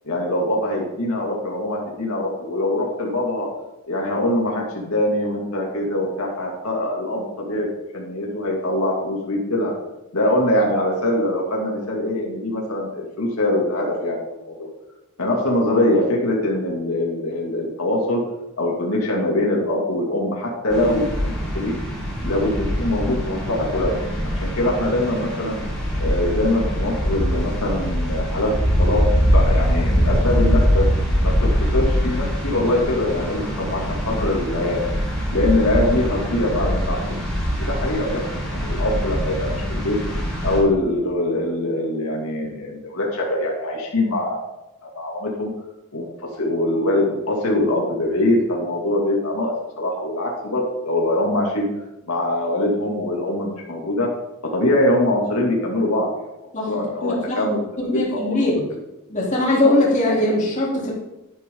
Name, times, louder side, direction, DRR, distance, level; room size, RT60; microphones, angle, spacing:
voice 1, 0.0-3.5 3.9-7.7 7.9-9.7 10.1-14.7 15.2-18.2 18.6-21.7 22.2-23.9 24.2-25.6 26.0-28.5 28.8-30.9 31.2-34.8 35.3-37.1 37.6-38.2 38.5-40.0 40.4-44.4 44.8-45.5 45.9-51.7 52.1-54.1 54.5-56.3 56.7-58.5, left 1 dB, 85° left, -2 dB, 2.6 m, -23 dB
sound 1, 20.7-40.6, equal, 5° left, 4.5 m, -23 dB
voice 2, 56.5-58.6 59.1-60.9, left 1 dB, 35° left, -4 dB, 3.6 m, -21 dB
12.0 x 11.0 x 3.9 m, 0.96 s
head